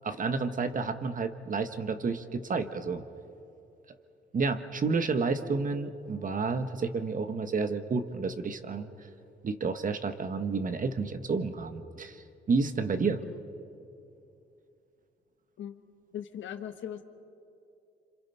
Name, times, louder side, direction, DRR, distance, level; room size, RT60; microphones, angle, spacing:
voice 1, 0.0-3.0 4.3-8.9 9.4-13.2, right 4 dB, 40° right, 9 dB, 1.4 m, -30 dB
voice 2, 16.1-17.0, left 10 dB, 70° left, 7 dB, 1.5 m, -39 dB
27.5 x 26.0 x 5.7 m, 2.7 s
cardioid pair, 90°, 20 cm